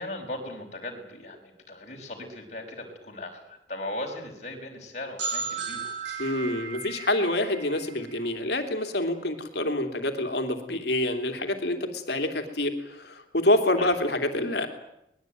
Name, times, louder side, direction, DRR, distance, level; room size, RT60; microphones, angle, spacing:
voice 1, 0.0-5.9 13.8-13.9, left 1 dB, 40° left, 1 dB, 5.7 m, -38 dB
sound 1, 5.2-8.8, right 5 dB, 85° right, 5.3 m, -36 dB
voice 2, 6.2-14.7, left 1 dB, 65° left, 6 dB, 2.9 m, -27 dB
23.5 x 21.0 x 9.3 m, 0.81 s
head